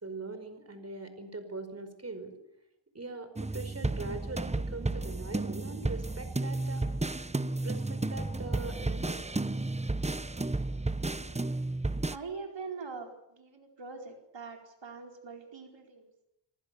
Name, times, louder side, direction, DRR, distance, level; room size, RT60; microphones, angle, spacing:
voice 1, 0.0-2.3 2.9-6.8 7.6-9.2, right 3 dB, 30° right, 9 dB, 5.0 m, -42 dB
sound 1, 3.4-12.2, right 2 dB, 15° right, 1.0 m, -32 dB
voice 2, 12.1-16.1, right 4 dB, 60° right, 3 dB, 4.7 m, -43 dB
27.5 x 26.0 x 7.0 m, 0.83 s
wide cardioid pair, 105°, 49 cm